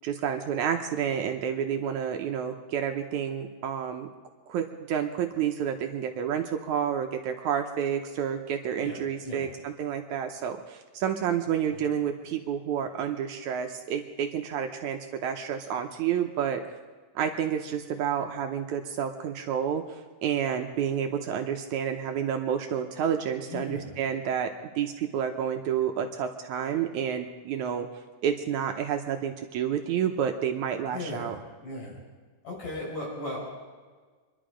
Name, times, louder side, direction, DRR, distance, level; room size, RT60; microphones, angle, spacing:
voice 1, 0.0-4.1 4.5-16.6 17.2-27.9 28.2-31.4, right 8 dB, 75° right, 5 dB, 2.0 m, -30 dB
voice 2, 8.8-9.5 11.7-11.9 23.5-23.9 30.9-32.0 32.4-33.4, left 2 dB, 70° left, -4 dB, 6.9 m, -37 dB
25.0 x 11.5 x 5.1 m, 1.5 s
omnidirectional pair, 3.9 m